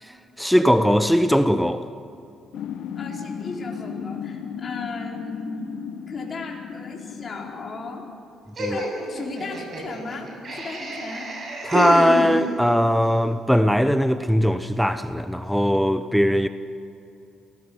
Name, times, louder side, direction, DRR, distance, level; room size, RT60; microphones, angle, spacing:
voice 1, 0.0-1.8 8.6-8.8 11.6-16.5, equal, ahead, 0.8 m, -20 dB
sound 1, 2.5-8.1, left 8 dB, 70° left, 1.3 m, -35 dB
voice 2, 2.9-5.8 6.1-8.0 8.7-11.3, left 3 dB, 35° left, 5.0 m, -36 dB
Laughter, 8.6-12.8, right 1 dB, 40° right, 7.9 m, -29 dB
27.5 x 18.5 x 7.3 m
cardioid pair, 105°, 0 cm